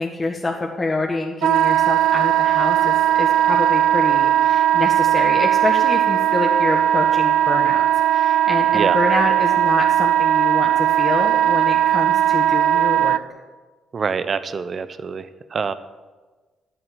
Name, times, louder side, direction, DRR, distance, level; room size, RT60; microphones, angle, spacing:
voice 1, 0.0-7.8 8.1-13.2, left 2 dB, 25° left, 0 dB, 1.6 m, -26 dB
Wind instrument woodwind instrument, 1.4-13.2, right 11 dB, 80° right, 0.4 m, -18 dB
voice 2, 13.9-15.7, right 5 dB, 45° right, 14 dB, 0.9 m, -25 dB
12.0 x 7.9 x 9.8 m, 1.3 s
cardioid pair, 90°, 0 cm